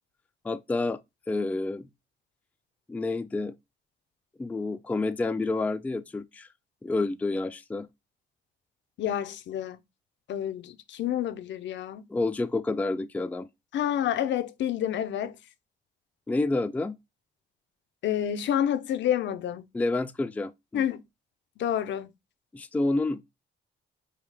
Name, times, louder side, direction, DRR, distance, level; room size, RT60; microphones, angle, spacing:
voice 1, 0.4-1.0 1.3-1.9 2.9-3.5 4.4-6.5 6.8-7.9 12.1-13.5 16.3-17.0 19.7-20.8 22.5-23.2, left 2 dB, 5° left, 0.3 m, -29 dB
voice 2, 9.0-9.8 10.3-12.0 13.7-15.4 18.0-19.6 20.7-21.0 21.6-22.1, left 10 dB, 70° left, 0.6 m, -29 dB
4.8 x 2.3 x 3.3 m
cardioid pair, 90°, 20 cm